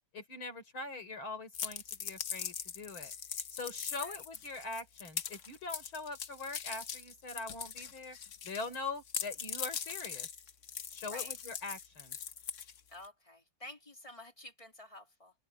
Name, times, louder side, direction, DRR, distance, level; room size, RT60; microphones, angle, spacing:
voice 1, 0.1-3.1 3.5-8.2 8.4-10.3 10.9-12.2, left 3 dB, 80° left, 5.2 m, -42 dB
sound 1, 1.5-8.8 9.1-13.1, left 7 dB, 50° left, 1.0 m, -41 dB
voice 2, 12.9-15.3, left 1 dB, 15° left, 2.9 m, -50 dB
omnidirectional pair, 2.2 m